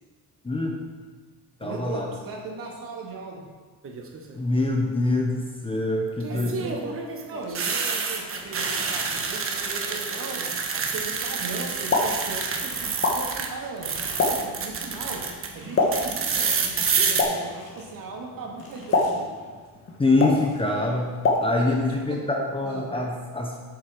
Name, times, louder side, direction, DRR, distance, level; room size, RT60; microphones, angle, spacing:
voice 1, 0.4-0.8 1.6-2.1 4.4-6.5 20.0-21.1 21.4-23.6, left 2 dB, 15° left, 1 dB, 0.8 m, -24 dB
voice 2, 1.6-3.4 6.3-7.0 7.2-10.4 10.7-13.9 14.3-15.2 15.5-19.5 21.6-22.2 22.6-22.9, right 3 dB, 55° right, -1 dB, 2.4 m, -38 dB
sound 1, 3.8-4.3 6.2-13.5 13.8-15.5 15.9-17.2, right 5 dB, 35° right, 1.1 m, -28 dB
sound 2, 7.4-7.7 8.0-11.3 11.6-13.1 13.8-14.5 15.5-16.2 17.3-17.9 18.6-19.2 20.3-20.6, left 2 dB, 45° left, 2.5 m, -47 dB
Explosion, 11.7-21.9, left 3 dB, 30° left, 1.5 m, -29 dB
8.5 x 8.2 x 6.0 m, 1.4 s
cardioid pair, 165°, 41 cm